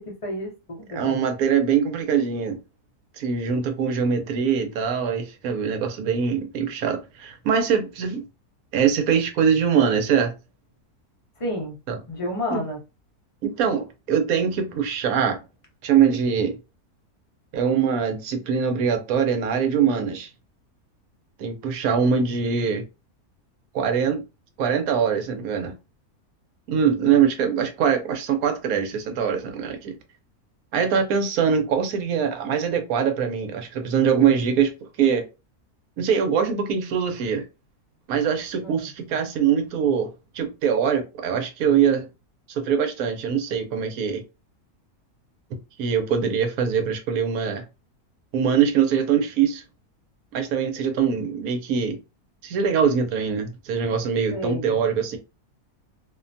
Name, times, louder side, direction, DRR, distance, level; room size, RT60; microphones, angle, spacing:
voice 1, 0.0-1.2 11.4-11.8 12.1-12.8 38.6-38.9 54.3-54.8, left 1 dB, 35° left, 0.6 m, -31 dB
voice 2, 0.9-2.6 3.2-8.2 8.7-10.3 11.9-12.0 12.5-12.6 13.4-15.4 15.8-16.6 17.5-20.3 21.4-22.8 23.7-24.2 24.6-25.7 26.7-30.0 30.7-34.7 35.0-35.2 36.0-37.4 38.1-40.1 40.3-42.1 42.6-44.2 45.8-47.6 48.3-49.6 50.3-52.0 52.4-55.2, right 7 dB, 75° right, 1.1 m, -23 dB
2.7 x 2.1 x 2.6 m
omnidirectional pair, 1.6 m